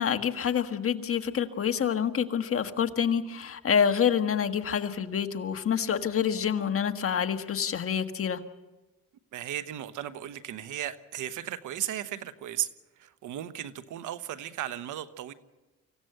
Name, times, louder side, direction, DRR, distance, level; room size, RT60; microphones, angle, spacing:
voice 1, 0.0-8.4, left 8 dB, 45° left, 8 dB, 1.5 m, -27 dB
voice 2, 9.3-12.7 13.0-15.3, right 11 dB, 80° right, 13 dB, 1.2 m, -35 dB
25.5 x 15.5 x 7.8 m, 1.1 s
cardioid pair, 90°, 30 cm